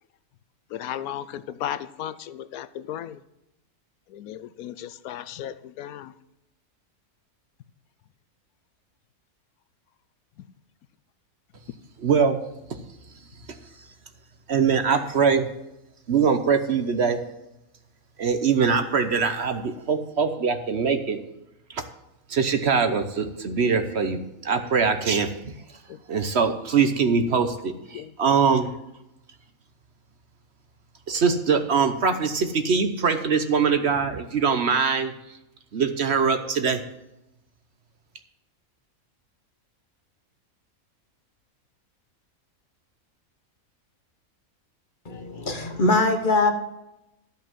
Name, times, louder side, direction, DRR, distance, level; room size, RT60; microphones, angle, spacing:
voice 1, 0.7-3.2 4.1-6.1 25.9-26.0 27.9-28.1, left 11 dB, 85° left, 14 dB, 1.1 m, -35 dB
voice 2, 12.0-12.4 12.7-12.8 14.5-15.5 16.1-17.2 18.2-21.2 21.7-21.8 22.3-25.5 26.1-28.7 31.1-35.1 35.7-36.8, right 5 dB, 55° right, 8 dB, 1.0 m, -22 dB
voice 3, 45.1-46.5, left 2 dB, 40° left, 7 dB, 1.1 m, -22 dB
12.5 x 5.4 x 7.4 m, 0.88 s
omnidirectional pair, 1.5 m